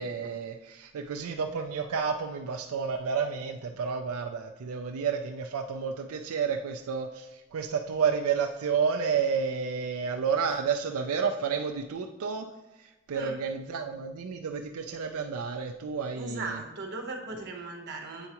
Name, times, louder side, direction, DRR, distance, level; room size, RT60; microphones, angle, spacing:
voice 1, 0.0-12.4 12.8-16.6, right 6 dB, 80° right, 4 dB, 0.4 m, -31 dB
voice 2, 16.2-18.3, right 3 dB, 50° right, 1 dB, 1.0 m, -38 dB
7.9 x 4.6 x 2.9 m, 1.0 s
head